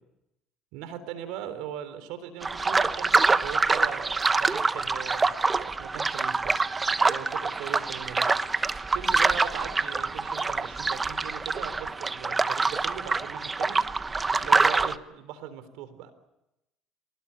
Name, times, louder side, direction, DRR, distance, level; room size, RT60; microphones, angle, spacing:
voice 1, 0.7-5.2 5.5-6.6 7.0-13.8 14.4-16.1, right 9 dB, 80° right, 12 dB, 3.6 m, -40 dB
sound 1, 2.4-14.9, right 3 dB, 20° right, 1.0 m, -25 dB
25.0 x 19.5 x 8.7 m, 0.90 s
supercardioid pair, 90°, 0 cm